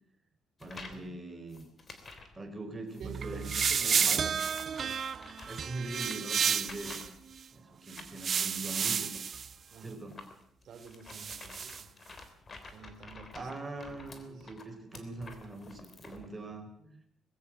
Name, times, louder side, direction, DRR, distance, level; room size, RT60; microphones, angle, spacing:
sound 1, 0.6-1.1 1.5-2.4 2.9-3.1 3.7-7.4 8.0-16.3, left 3 dB, 30° left, 3.4 m, -51 dB
voice 1, 0.6-1.7 2.3-4.3 5.5-7.0 7.5-9.1 9.8-10.2 13.3-16.7, right 2 dB, 15° right, 4 dB, 4.8 m, -42 dB
sound 2, 3.0-7.1 7.9-9.5 11.1-11.8, right 7 dB, 40° right, 0.8 m, -31 dB
voice 2, 3.0-5.1 9.7-10.0 10.6-11.9 12.6-13.5 13.8-14.6 14.9-15.1 16.2-16.5 16.8-17.0, right 5 dB, 60° right, 5 dB, 2.9 m, -50 dB
21.0 x 16.0 x 7.9 m, 0.69 s
cardioid pair, 135°, 0 cm